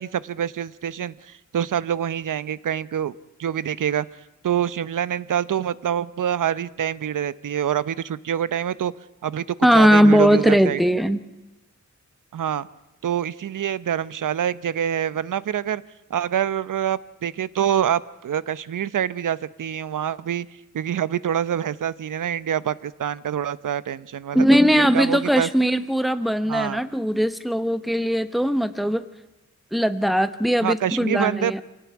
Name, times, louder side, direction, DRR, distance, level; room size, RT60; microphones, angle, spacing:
voice 1, 0.0-3.1 3.4-4.1 4.4-8.9 9.2-10.8 12.3-12.7 13.0-15.8 16.1-20.5 20.7-24.4 24.7-25.5 26.5-26.8 30.6-31.5, right 9 dB, 90° right, 17 dB, 0.8 m, -26 dB
voice 2, 9.6-11.2 24.3-29.0 29.7-31.6, equal, ahead, 11 dB, 1.0 m, -19 dB
26.0 x 18.0 x 9.6 m, 0.98 s
wide cardioid pair, 165°, 31 cm